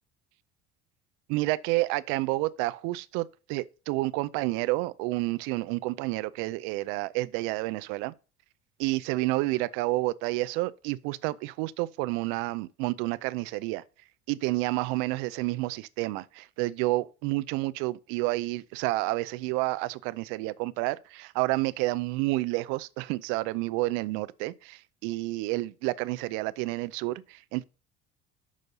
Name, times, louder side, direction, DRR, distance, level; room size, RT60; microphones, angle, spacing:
voice 1, 1.3-8.1 8.8-13.8 14.3-27.6, right 20 dB, 80° right, 0.5 m, -30 dB
6.6 x 6.3 x 5.3 m
cardioid pair, 175°, 19 cm